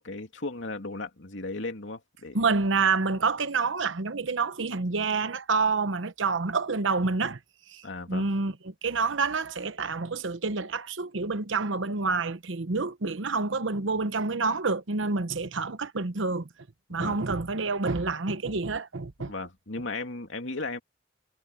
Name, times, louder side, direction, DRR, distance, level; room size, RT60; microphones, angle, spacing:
voice 1, 0.0-2.4 7.8-8.3 16.9-17.2 19.3-20.8, left 3 dB, 80° left, 2.7 m, -36 dB
voice 2, 2.3-7.4 7.7-16.5 16.9-19.3, right 4 dB, 80° right, 1.0 m, -28 dB
head